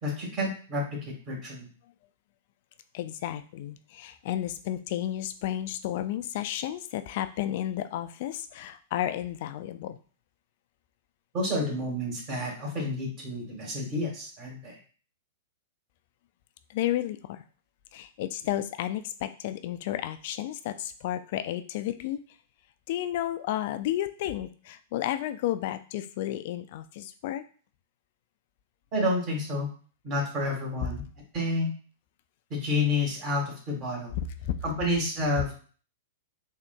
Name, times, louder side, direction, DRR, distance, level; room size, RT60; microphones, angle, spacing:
voice 1, 0.0-1.7 11.3-14.8 28.9-29.7 30.0-31.0 31.3-31.7 32.5-34.1 34.6-35.5, left 1 dB, 35° right, -1 dB, 1.6 m, -29 dB
voice 2, 2.9-10.0 16.7-17.4 17.9-22.2 22.9-27.4 34.4-34.6, left 12 dB, 50° left, 10 dB, 0.3 m, -32 dB
3.7 x 2.8 x 2.2 m, 0.40 s
figure-of-eight pair, 100°, 0 cm